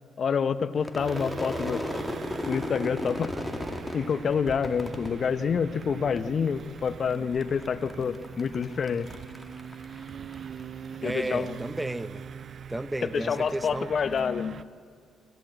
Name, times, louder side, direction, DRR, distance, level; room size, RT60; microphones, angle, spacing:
voice 1, 0.2-1.8 2.5-3.3 3.9-9.1 11.0-11.5 13.1-14.6, left 6 dB, 50° left, 14 dB, 0.8 m, -27 dB
Crowd / Fireworks, 0.8-6.2 6.5-7.1 7.4-11.0, left 1 dB, 10° left, 2.3 m, -36 dB
sound 1, 1.0-14.6, right 7 dB, 55° right, 0.6 m, -42 dB
voice 2, 11.0-12.2 12.7-13.9, right 1 dB, 10° right, 14 dB, 0.7 m, -33 dB
28.0 x 15.0 x 8.9 m, 2.1 s
cardioid pair, 90°, 0 cm